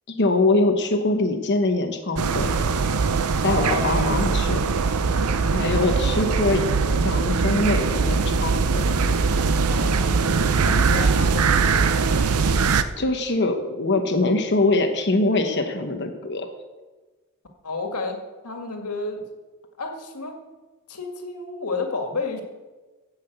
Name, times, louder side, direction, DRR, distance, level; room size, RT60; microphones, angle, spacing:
voice 1, 0.2-2.6 3.4-4.8 5.5-6.6 7.0-8.9 13.0-16.5, left 2 dB, 50° left, 5 dB, 1.1 m, -23 dB
sound 1, 2.2-12.8, right 4 dB, 80° right, 0.7 m, -21 dB
voice 2, 3.5-4.1 5.7-6.3 9.7-11.6 17.6-18.2 18.4-19.3 19.8-20.3 20.9-22.4, left 3 dB, 90° left, 3 dB, 2.0 m, -31 dB
15.0 x 5.8 x 7.9 m, 1.2 s
head